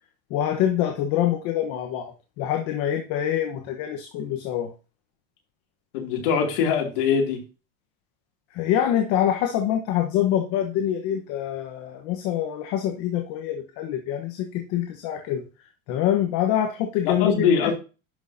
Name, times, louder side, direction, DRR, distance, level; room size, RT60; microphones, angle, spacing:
voice 1, 0.3-4.7 8.5-15.4 15.9-17.7, left 11 dB, 55° left, 4 dB, 1.2 m, -25 dB
voice 2, 5.9-7.4 17.0-17.7, left 6 dB, 70° left, 1 dB, 2.7 m, -22 dB
11.0 x 6.5 x 2.7 m, 0.32 s
supercardioid pair, 155°, 29 cm